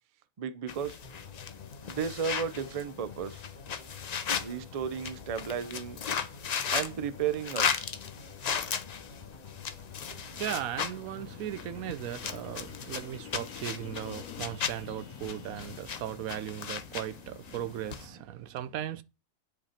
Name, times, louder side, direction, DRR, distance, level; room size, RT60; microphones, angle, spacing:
voice 1, 0.4-1.0 1.9-3.4 4.4-6.0 6.7-7.9, right 7 dB, 50° right, 0.4 m, -34 dB
sound 1, 0.7-18.1, left 7 dB, 60° left, 0.4 m, -37 dB
sound 2, 1.0-15.8, left 6 dB, 30° left, 1.6 m, -49 dB
sound 3, 6.4-18.2, left 7 dB, 85° left, 1.1 m, -52 dB
voice 2, 10.1-19.0, right 11 dB, 80° right, 1.1 m, -37 dB
9.0 x 5.2 x 4.3 m
omnidirectional pair, 1.5 m